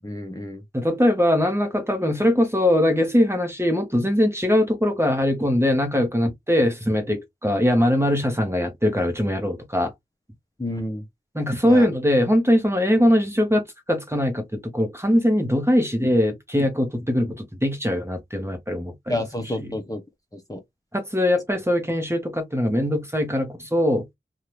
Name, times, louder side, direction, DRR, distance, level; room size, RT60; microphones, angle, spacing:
voice 1, 0.0-0.6 10.6-11.0 11.6-11.9 19.1-20.0 20.3-20.6, left 1 dB, 20° left, 0.7 m, -30 dB
voice 2, 0.7-9.9 11.3-19.2 19.6-19.7 20.9-24.0, left 1 dB, 15° right, 1.0 m, -21 dB
2.7 x 2.5 x 3.2 m
wide cardioid pair, 40°, 19 cm